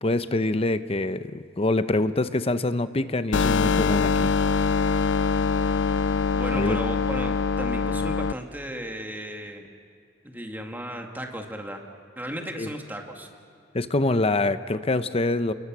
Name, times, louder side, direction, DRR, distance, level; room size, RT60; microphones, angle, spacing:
voice 1, 0.0-4.3 6.5-6.8 12.6-12.7 13.7-15.5, left 2 dB, 30° left, 12 dB, 0.8 m, -25 dB
sound 1, 3.3-8.3, left 5 dB, 70° left, 0.4 m, -23 dB
voice 2, 6.4-9.7 10.2-11.8 12.2-13.3, right 1 dB, 10° right, 2 dB, 2.0 m, -35 dB
28.5 x 21.5 x 6.2 m, 2.6 s
head